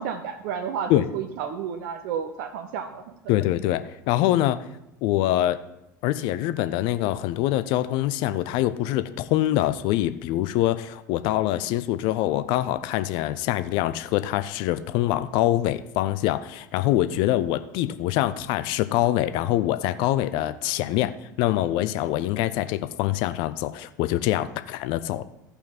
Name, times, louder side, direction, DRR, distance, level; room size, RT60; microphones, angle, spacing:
voice 1, 0.0-3.0, right 7 dB, 55° right, 8 dB, 0.8 m, -31 dB
voice 2, 3.3-4.6 5.0-5.6 6.0-21.1 21.4-25.2, left 14 dB, 50° left, 12 dB, 0.6 m, -24 dB
14.5 x 5.6 x 4.1 m, 0.86 s
figure-of-eight pair, 70°, 10 cm